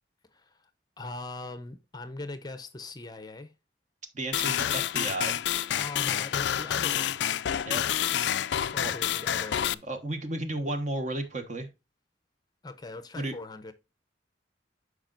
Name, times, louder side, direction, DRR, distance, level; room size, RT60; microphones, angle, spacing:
voice 1, 1.0-3.5 5.8-7.2 8.5-9.8 12.6-13.7, left 2 dB, 20° left, 0.6 m, -41 dB
voice 2, 4.1-5.4 7.7-7.8 8.8-8.9 9.9-11.7 13.2-13.3, right 1 dB, 40° right, 1.2 m, -33 dB
sound 1, 4.3-9.7, left 10 dB, 70° left, 0.3 m, -28 dB
12.0 x 4.9 x 2.5 m
head